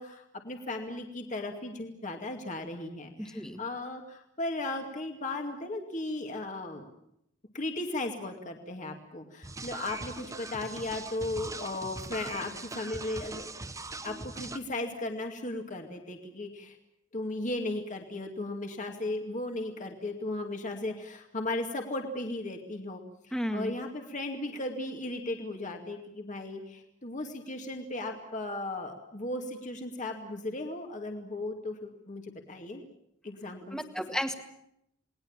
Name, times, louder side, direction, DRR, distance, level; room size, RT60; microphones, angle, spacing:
voice 1, 0.0-6.9 7.5-13.5 14.0-16.8 17.1-23.0 23.3-32.8 33.2-33.8, left 2 dB, 40° left, 3 dB, 2.3 m, -36 dB
sound 1, 9.4-14.6, right 3 dB, 15° right, 1.3 m, -41 dB
voice 2, 23.3-23.7 33.7-34.3, equal, 5° left, 6 dB, 1.9 m, -32 dB
29.0 x 20.0 x 7.3 m, 0.77 s
head